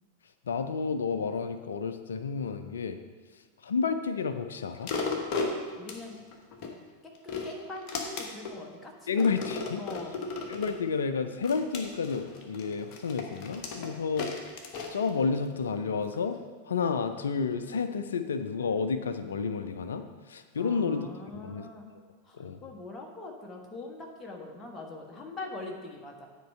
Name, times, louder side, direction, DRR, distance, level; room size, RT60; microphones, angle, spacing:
voice 1, 0.5-3.0 3.6-4.9 9.1-9.8 10.5-14.3 14.9-16.4 16.7-20.0 20.3-21.1 21.3-21.7 22.3-22.6, left 5 dB, 65° left, 9 dB, 0.4 m, -30 dB
sound 1, 4.8-6.7 7.1-8.6 9.2-10.8 11.4-15.6 16.1-16.2, left 4 dB, 40° left, 1.1 m, -35 dB
voice 2, 5.8-6.2 7.0-9.5 9.8-10.2 20.6-21.8 22.2-26.3, left 3 dB, 15° left, 0 dB, 1.4 m, -43 dB
9.2 x 4.6 x 5.5 m, 1.4 s
figure-of-eight pair, 90°, 0 cm